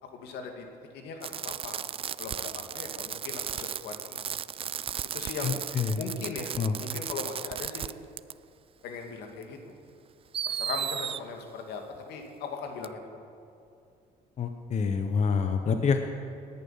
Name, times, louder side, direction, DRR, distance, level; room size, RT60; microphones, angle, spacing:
voice 1, 0.0-0.7 0.9-1.8 2.2-4.3 5.1-5.6 6.0-6.5 6.8-7.9 8.8-9.7 10.5-11.8 12.1-13.0, left 5 dB, 80° left, 3 dB, 2.2 m, -39 dB
Fireworks, 1.2-7.9 8.2-8.3 9.4-9.5 10.3-11.2 12.8-12.9, right 9 dB, 35° right, 0.3 m, -35 dB
voice 2, 5.4-6.0 6.6-6.7 14.4-16.0, left 5 dB, 45° left, 6 dB, 1.0 m, -27 dB
19.0 x 11.0 x 5.7 m, 2.5 s
cardioid pair, 110°, 17 cm